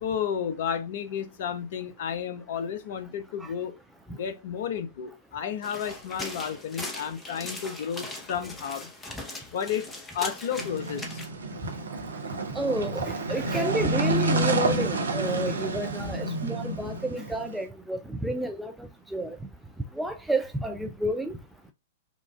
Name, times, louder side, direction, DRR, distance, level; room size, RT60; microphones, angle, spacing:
voice 1, 0.0-3.7 4.2-8.9 9.5-9.9 10.1-11.2, left 8 dB, 50° left, 0.7 m, -32 dB
sound 1, 5.6-11.3, left 2 dB, 15° left, 1.0 m, -40 dB
sound 2, 10.6-17.6, right 2 dB, 75° right, 0.8 m, -29 dB
voice 2, 12.5-19.4 20.0-21.4, right 1 dB, 5° right, 0.4 m, -30 dB
5.1 x 2.5 x 2.3 m
figure-of-eight pair, 105°, 0 cm